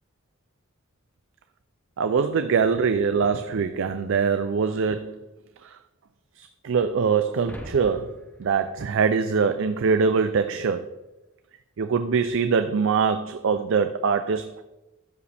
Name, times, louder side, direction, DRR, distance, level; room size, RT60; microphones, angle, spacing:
voice 1, 2.0-5.2 6.4-8.1 8.4-10.9 11.8-14.6, right 5 dB, 65° right, 9 dB, 0.4 m, -23 dB
sound 1, 7.3-9.9, equal, 10° left, 0.9 m, -42 dB
13.0 x 5.0 x 3.4 m, 1.0 s
head